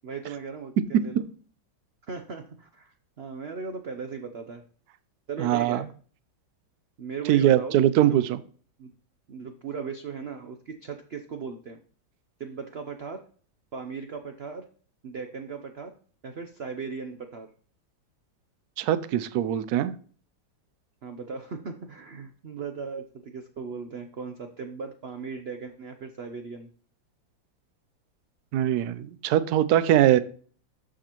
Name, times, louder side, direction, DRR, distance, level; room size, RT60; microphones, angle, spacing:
voice 1, 0.0-1.3 2.1-4.6 5.3-5.9 7.0-8.2 8.8-8.9 9.3-11.8 12.4-13.2 13.7-14.7 15.0-15.9 16.2-17.5 21.0-26.7, right 5 dB, 85° right, 6 dB, 0.5 m, -37 dB
voice 2, 5.4-5.8 7.3-8.2 18.8-19.9 28.5-30.2, right 12 dB, 70° right, 14 dB, 1.0 m, -22 dB
13.0 x 4.9 x 3.0 m, 0.43 s
omnidirectional pair, 2.1 m